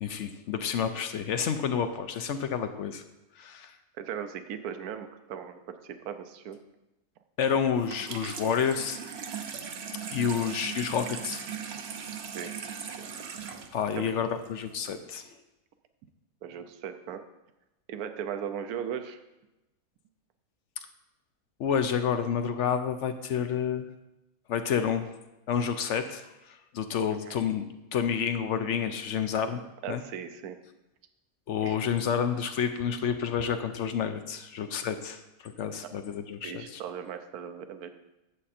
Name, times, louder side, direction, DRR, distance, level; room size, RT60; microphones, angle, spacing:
voice 1, 0.0-3.0 3.4-3.7 7.4-9.0 10.1-11.4 13.7-15.2 21.6-23.9 24.5-25.1 25.5-26.3 26.7-29.6 29.9-30.0 31.5-36.8, left 7 dB, 65° left, 9 dB, 0.7 m, -29 dB
voice 2, 4.0-6.6 10.4-10.7 12.2-12.5 13.0-13.1 14.0-14.1 16.4-17.2 17.9-19.2 27.1-27.4 29.8-30.6 31.6-31.8 35.8-35.9 36.4-37.9, right 8 dB, 70° right, 9 dB, 1.2 m, -38 dB
Water tap faucet / Sink (filling or washing), 7.8-14.8, right 7 dB, 55° right, 0.8 m, -39 dB
9.9 x 7.5 x 4.2 m, 0.98 s
omnidirectional pair, 1.7 m